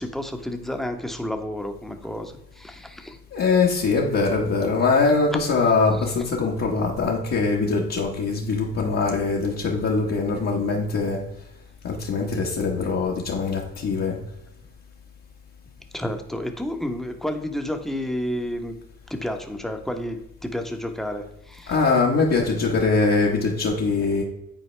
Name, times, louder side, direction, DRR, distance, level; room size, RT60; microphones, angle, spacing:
voice 1, 0.0-3.2 5.6-5.7 6.0-6.1 15.9-18.7 19.1-21.7, left 1 dB, ahead, 5 dB, 1.0 m, -31 dB
voice 2, 3.3-11.2 11.8-14.2 21.7-24.2, left 4 dB, 55° left, -3 dB, 1.3 m, -22 dB
9.6 x 4.2 x 3.3 m, 0.88 s
cardioid pair, 90°, 30 cm